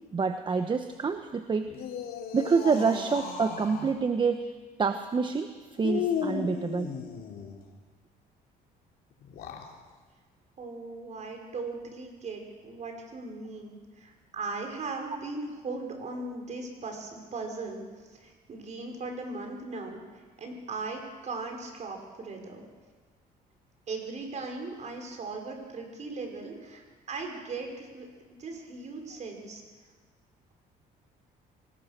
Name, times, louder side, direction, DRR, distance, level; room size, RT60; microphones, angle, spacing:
voice 1, 0.1-1.7 2.3-4.5 4.8-5.5 5.8-7.0, right 5 dB, 30° right, 8 dB, 1.0 m, -27 dB
sound 1, 1.7-3.9 5.8-7.6 9.2-9.7, left 7 dB, 65° left, 3.6 m, -35 dB
voice 2, 10.6-22.7 23.9-29.6, right 3 dB, 45° right, 3 dB, 5.5 m, -38 dB
24.5 x 19.0 x 6.8 m, 1.4 s
cardioid pair, 110°, 17 cm